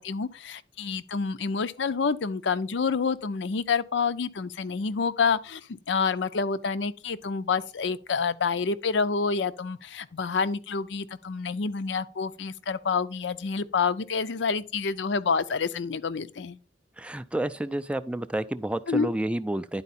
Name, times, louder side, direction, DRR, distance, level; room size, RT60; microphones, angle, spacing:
voice 1, 0.0-5.6 5.9-16.6 18.9-19.1, left 5 dB, 70° left, 0.5 m, -28 dB
voice 2, 17.0-19.8, right 1 dB, 5° right, 0.3 m, -30 dB
10.5 x 4.5 x 4.1 m
head